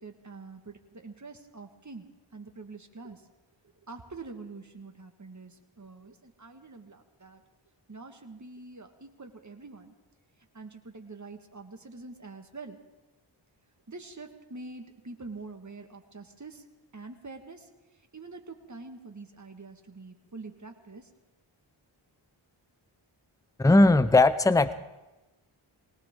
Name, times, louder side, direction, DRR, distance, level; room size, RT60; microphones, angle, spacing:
voice 1, 0.0-2.1 2.3-3.2 3.9-7.4 7.9-9.9 10.5-12.8 13.9-16.6 16.9-17.7 18.1-21.1, right 3 dB, 35° right, 5 dB, 1.7 m, -45 dB
voice 2, 23.6-24.7, left 2 dB, 5° left, 14 dB, 0.6 m, -19 dB
21.0 x 18.5 x 3.7 m, 1.1 s
cardioid pair, 40°, 49 cm